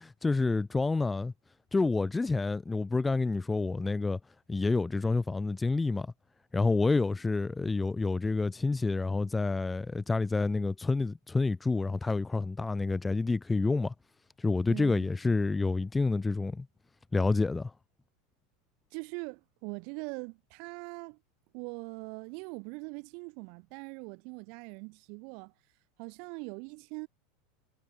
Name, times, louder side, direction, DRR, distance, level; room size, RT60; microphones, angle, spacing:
voice 1, 0.0-1.3 1.7-4.2 4.5-6.1 6.5-13.9 14.4-16.7 17.1-17.7, left 3 dB, 10° left, 1.2 m, -28 dB
voice 2, 14.7-15.1 18.9-21.2 21.5-25.5 26.0-27.1, right 36 dB, 55° right, 1.2 m, -42 dB
supercardioid pair, 140°, 0 cm